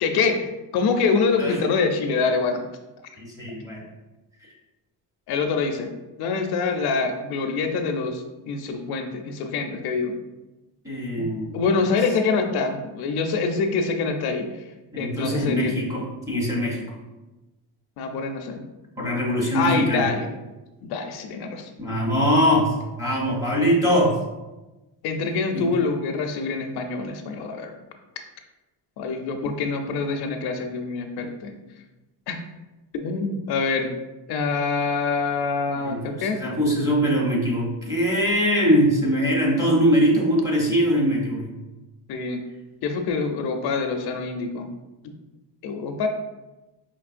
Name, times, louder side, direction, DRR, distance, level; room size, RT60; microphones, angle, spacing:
voice 1, 0.0-2.7 5.3-5.9 6.2-10.2 11.2-11.3 11.5-14.5 15.0-15.8 18.0-18.6 19.5-20.3 20.8-21.7 25.0-27.7 29.0-31.6 32.3-32.4 32.9-33.9 34.3-36.4 42.1-42.4 42.8-44.7 45.6-46.1, left 4 dB, 65° left, 5 dB, 0.5 m, -25 dB
voice 2, 3.2-3.8 10.8-11.6 14.9-16.8 19.0-20.1 21.8-24.2 25.5-25.7 35.8-41.5, equal, 10° right, -4 dB, 0.6 m, -22 dB
5.2 x 3.0 x 2.5 m, 1.1 s
cardioid pair, 175°, 41 cm